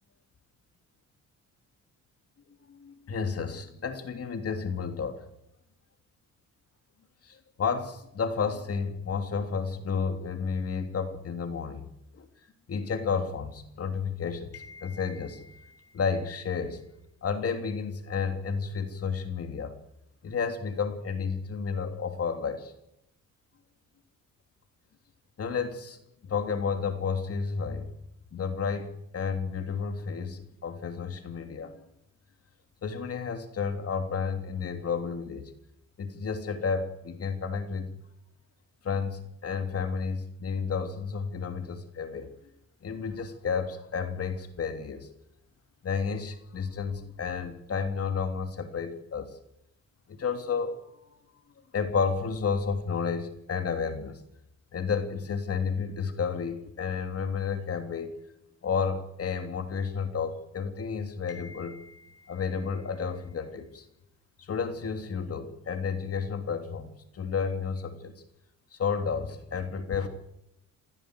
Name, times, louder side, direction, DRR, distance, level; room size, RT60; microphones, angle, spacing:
voice 1, 2.7-5.3 7.2-11.9 12.1-12.3 12.7-16.8 17.2-19.8 20.2-22.7 25.4-27.9 28.3-31.8 32.8-35.5 36.0-37.9 38.8-42.3 42.8-45.1 45.8-49.4 50.1-50.9 51.7-54.2 54.7-58.1 58.6-63.9 64.4-68.1 68.7-70.1, left 5 dB, 50° left, 7 dB, 3.2 m, -31 dB
28.0 x 15.5 x 8.1 m, 0.82 s
cardioid pair, 90°, 30 cm